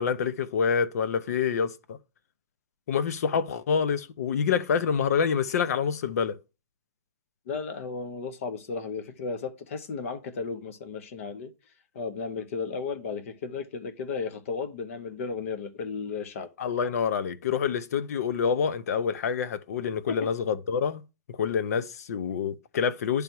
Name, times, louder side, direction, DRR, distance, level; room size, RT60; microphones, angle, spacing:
voice 1, 0.0-2.0 2.9-6.4 16.6-21.0 21.3-23.2, left 6 dB, 65° left, 0.8 m, -27 dB
voice 2, 7.5-11.5 11.9-16.5 20.1-20.3, left 4 dB, 50° left, 1.1 m, -34 dB
10.5 x 3.5 x 4.5 m
hypercardioid pair, 170°, 9 cm